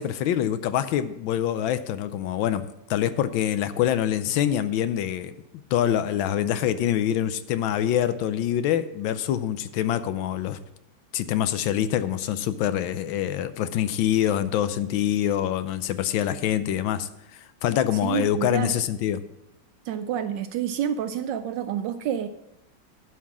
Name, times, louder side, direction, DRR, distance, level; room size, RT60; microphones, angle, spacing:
voice 1, 0.0-5.3 5.7-10.6 11.1-19.2, left 10 dB, 75° left, 1.3 m, -25 dB
voice 2, 18.0-18.7 19.9-22.3, right 9 dB, 75° right, 1.1 m, -28 dB
11.0 x 5.7 x 6.0 m
omnidirectional pair, 2.3 m